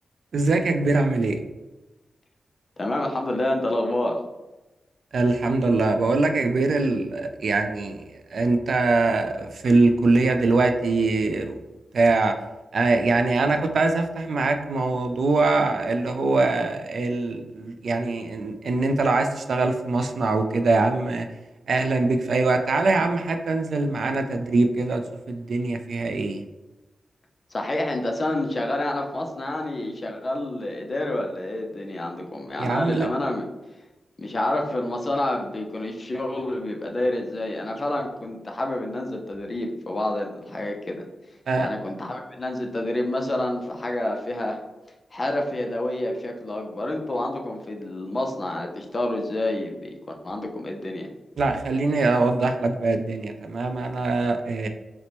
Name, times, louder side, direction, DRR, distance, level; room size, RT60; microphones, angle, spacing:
voice 1, 0.3-1.4 5.1-8.0 8.3-11.6 11.9-12.3 12.7-21.3 21.7-25.0 25.3-26.4 32.6-33.1 41.5-41.7 51.4-54.7, right 3 dB, 65° right, 6 dB, 0.3 m, -23 dB
voice 2, 2.8-4.2 27.5-33.4 34.2-41.1 41.6-44.6 45.1-49.9 50.2-51.1, left 1 dB, 35° left, 2 dB, 0.5 m, -28 dB
4.3 x 2.1 x 2.9 m, 1.0 s
wide cardioid pair, 120°, 0 cm